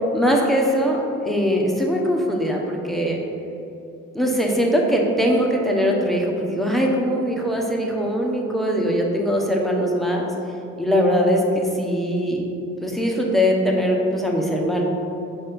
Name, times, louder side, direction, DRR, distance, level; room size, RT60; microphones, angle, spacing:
voice 1, 0.1-3.2 4.1-10.3 10.8-12.5 12.8-14.8, equal, ahead, -1 dB, 1.0 m, -21 dB
5.2 x 4.3 x 5.3 m, 2.8 s
cardioid pair, 90°, 30 cm